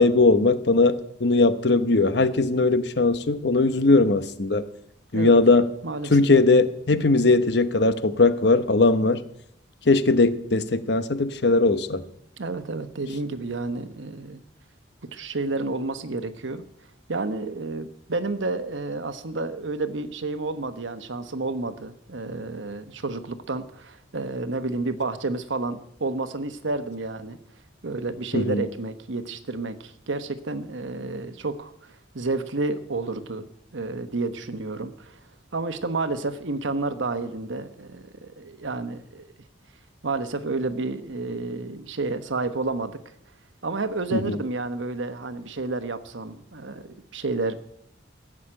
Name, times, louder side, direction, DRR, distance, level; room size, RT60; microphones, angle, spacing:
voice 1, 0.0-4.7 5.1-5.7 6.1-9.2 9.9-12.0 28.3-28.7 44.1-44.4, left 3 dB, 60° left, 0.9 m, -19 dB
voice 2, 5.8-6.2 12.4-14.4 15.1-16.6 17.1-27.4 27.8-33.5 33.7-35.2 35.5-39.2 40.0-43.0 43.6-47.6, right 3 dB, 80° right, 1.1 m, -30 dB
15.5 x 7.5 x 8.7 m
head